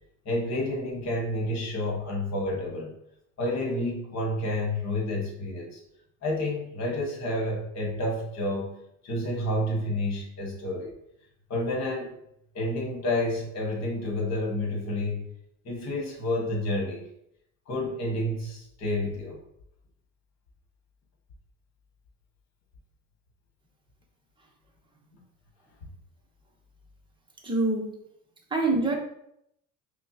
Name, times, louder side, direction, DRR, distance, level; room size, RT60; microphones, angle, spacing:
voice 1, 0.2-2.9 3.4-5.8 6.2-8.7 9.0-10.9 11.5-12.1 12.5-15.3 15.6-17.0 17.7-19.4 25.1-25.2, left 1 dB, 45° left, -1 dB, 1.5 m, -29 dB
voice 2, 27.4-27.9 28.5-29.0, right 2 dB, 15° right, 0 dB, 0.8 m, -24 dB
5.2 x 2.3 x 2.8 m, 0.75 s
supercardioid pair, 105°, 37 cm